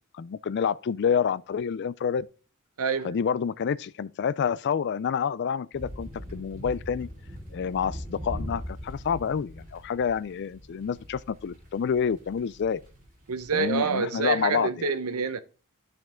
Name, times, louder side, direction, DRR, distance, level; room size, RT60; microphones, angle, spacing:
voice 1, 0.1-2.3 3.0-7.1 7.5-12.8 13.5-14.9, left 7 dB, 50° left, 0.3 m, -28 dB
voice 2, 2.8-3.1 13.3-15.4, right 5 dB, 80° right, 0.8 m, -27 dB
sound 1, 5.7-13.7, equal, 35° right, 2.8 m, -41 dB
12.0 x 5.2 x 3.7 m
head